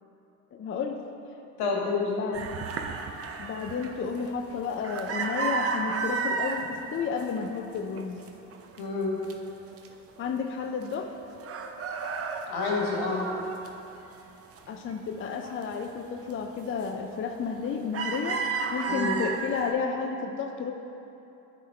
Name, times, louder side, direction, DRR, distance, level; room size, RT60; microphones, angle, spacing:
voice 1, 0.5-1.0 1.8-2.5 3.4-8.2 10.2-11.1 14.7-20.7, left 5 dB, 30° left, 4 dB, 0.5 m, -32 dB
voice 2, 1.6-2.1 8.8-9.2 12.5-13.3 18.9-19.2, left 4 dB, 70° left, -2 dB, 1.5 m, -28 dB
sound 1, 2.3-6.6 7.1-7.7 8.0-9.3 9.8-9.9 10.2-11.1 11.4-14.2 14.6-15.7 16.1-16.3 16.8-17.2 17.5-19.7, right 4 dB, 35° right, 0.7 m, -33 dB
9.8 x 3.7 x 4.3 m, 2.9 s
supercardioid pair, 75°, 40 cm